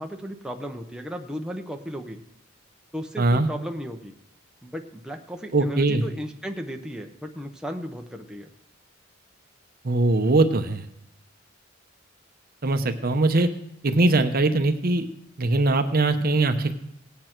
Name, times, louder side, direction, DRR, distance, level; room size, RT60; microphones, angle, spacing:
voice 1, 0.0-2.2 2.9-4.1 4.6-8.5, equal, 5° right, 2 dB, 0.8 m, -35 dB
voice 2, 3.2-3.5 5.5-6.0 9.8-10.8 12.6-13.5 13.8-15.0 15.4-16.7, right 2 dB, 45° right, 8 dB, 0.8 m, -21 dB
17.5 x 8.6 x 4.5 m, 0.81 s
head